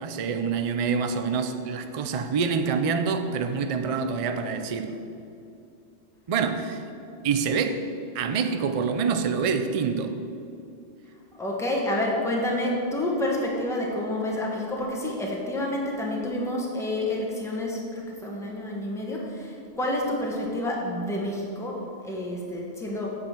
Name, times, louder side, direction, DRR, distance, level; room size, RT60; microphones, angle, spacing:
voice 1, 0.0-5.0 6.3-6.8 7.2-7.9 8.1-10.1, right 5 dB, 60° right, 7 dB, 0.3 m, -26 dB
voice 2, 11.3-23.2, left 1 dB, ahead, -3 dB, 1.2 m, -29 dB
8.4 x 5.0 x 7.4 m, 2.7 s
omnidirectional pair, 1.3 m